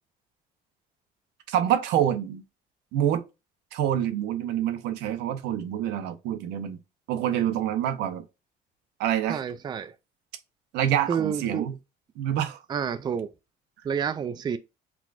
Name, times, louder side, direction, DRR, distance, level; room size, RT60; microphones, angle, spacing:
voice 1, 1.5-2.4 2.9-3.2 3.7-6.8 7.1-8.2 9.0-9.4 10.7-11.8 12.2-12.6, right 10 dB, 90° right, 0.7 m, -26 dB
voice 2, 9.3-9.9 11.1-11.7 12.7-13.3 13.8-14.6, right 7 dB, 25° right, 0.3 m, -29 dB
6.0 x 2.3 x 2.4 m
cardioid pair, 110°, 17 cm